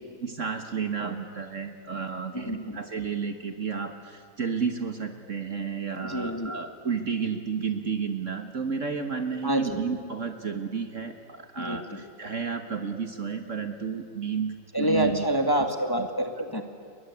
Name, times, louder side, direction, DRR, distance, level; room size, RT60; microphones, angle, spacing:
voice 1, 0.2-15.5 16.0-16.1, right 6 dB, 45° right, 7 dB, 1.7 m, -32 dB
voice 2, 2.3-2.8 6.0-6.5 9.4-9.8 11.6-12.0 14.7-16.6, right 1 dB, 10° left, 5 dB, 1.8 m, -27 dB
30.0 x 22.5 x 8.3 m, 2.4 s
omnidirectional pair, 2.0 m